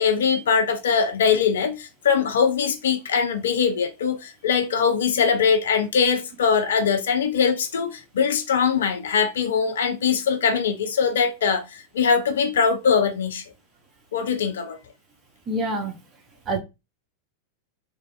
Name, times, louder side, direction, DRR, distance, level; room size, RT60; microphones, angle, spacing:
voice 1, 0.0-13.4 14.1-14.8, left 6 dB, 65° left, 0.4 m, -22 dB
voice 2, 15.5-15.9 16.5-16.6, right 1 dB, 25° right, 0.8 m, -25 dB
3.0 x 2.4 x 2.2 m
figure-of-eight pair, 90°, 0 cm